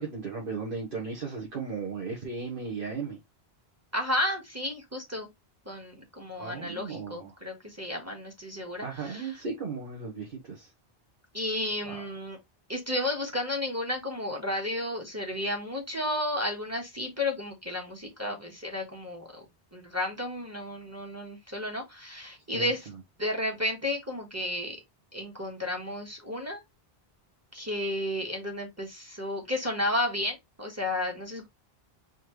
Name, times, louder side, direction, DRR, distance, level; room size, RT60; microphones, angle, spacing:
voice 1, 0.0-3.2 6.4-7.3 8.8-10.7 11.8-12.0 22.5-22.7, right 4 dB, 60° right, 1.5 m, -36 dB
voice 2, 3.9-5.3 5.6-9.4 11.3-12.4 12.7-19.4 19.7-22.9 23.2-24.8 25.1-26.6 27.5-31.5, left 1 dB, 15° right, 1.4 m, -32 dB
4.3 x 3.9 x 3.1 m
omnidirectional pair, 1.0 m